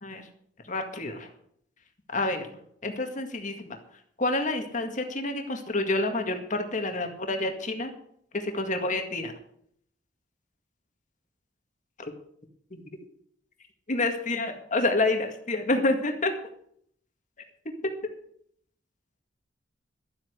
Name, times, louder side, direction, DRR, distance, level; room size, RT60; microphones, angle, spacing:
voice 1, 0.7-1.3 2.1-2.4 2.8-3.8 4.2-7.9 8.4-9.3 12.0-12.1 12.7-12.8 13.9-16.3, left 2 dB, 45° left, 5 dB, 1.9 m, -28 dB
12.5 x 8.0 x 8.2 m, 0.66 s
head